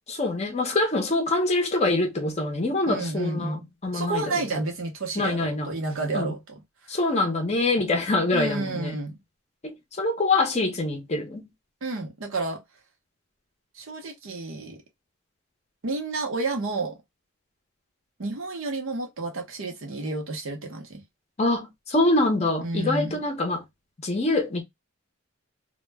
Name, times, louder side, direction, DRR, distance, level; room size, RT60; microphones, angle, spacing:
voice 1, 0.1-3.6 3.8-4.3 5.2-5.7 6.1-6.3 6.9-9.0 9.6-11.4 21.4-23.6 24.0-24.6, left 2 dB, 30° left, 0.6 m, -25 dB
voice 2, 2.9-3.7 3.9-6.6 8.3-9.2 11.8-12.6 13.7-14.8 15.8-17.0 18.2-21.0 22.6-23.2, right 3 dB, 70° right, 0.7 m, -30 dB
2.2 x 2.0 x 3.3 m
head